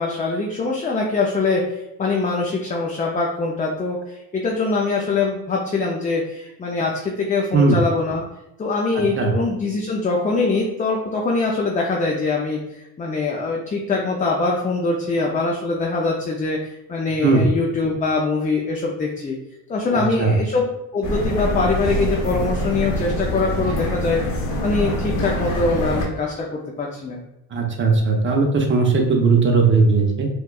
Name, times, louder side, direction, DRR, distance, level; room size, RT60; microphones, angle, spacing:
voice 1, 0.0-8.2 8.6-12.6 13.0-19.4 19.7-20.7 20.9-27.2, left 3 dB, 20° left, -1 dB, 0.4 m, -23 dB
voice 2, 19.9-20.3 27.5-30.3, right 4 dB, 30° right, 2 dB, 0.7 m, -18 dB
sound 1, 21.0-26.1, left 1 dB, 75° left, 1.0 m, -24 dB
4.3 x 2.2 x 2.3 m, 0.87 s
supercardioid pair, 85°, 41 cm